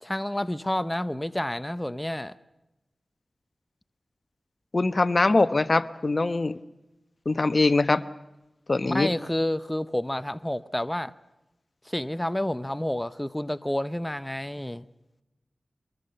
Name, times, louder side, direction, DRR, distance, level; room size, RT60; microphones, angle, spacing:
voice 1, 0.0-2.3 8.9-11.1 11.9-14.9, left 1 dB, 15° left, 13 dB, 0.7 m, -29 dB
voice 2, 4.7-6.6 7.3-8.0 8.7-9.1, left 3 dB, 50° left, 13 dB, 0.9 m, -22 dB
23.0 x 21.5 x 6.8 m, 0.95 s
cardioid pair, 40°, 0 cm